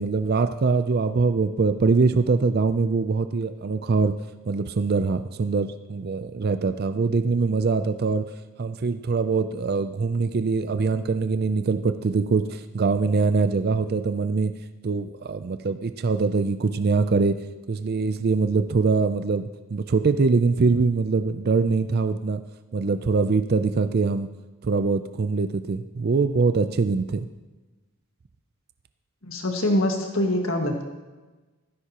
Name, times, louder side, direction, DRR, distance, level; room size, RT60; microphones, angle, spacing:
voice 1, 0.0-4.1 4.5-8.2 8.6-14.5 14.8-17.4 17.7-22.4 22.7-24.3 24.6-27.3, right 4 dB, 45° right, 10 dB, 0.4 m, -23 dB
voice 2, 29.2-30.8, left 1 dB, 60° left, 2 dB, 1.8 m, -24 dB
14.5 x 13.0 x 2.9 m, 1.2 s
head